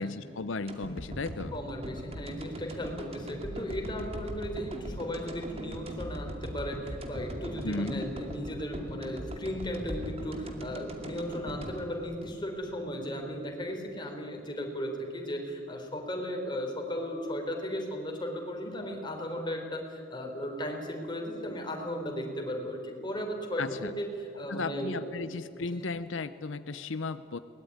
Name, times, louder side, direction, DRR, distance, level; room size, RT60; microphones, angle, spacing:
voice 1, 0.0-1.5 7.6-8.0 23.6-23.9 24.5-27.4, left 3 dB, 80° left, 12 dB, 0.7 m, -35 dB
sound 1, 0.7-12.9 13.3-13.4, equal, 30° right, 2.5 m, -40 dB
voice 2, 1.5-25.1 25.8-25.9, equal, 25° left, 2 dB, 3.8 m, -36 dB
22.5 x 19.5 x 9.6 m, 2.8 s
head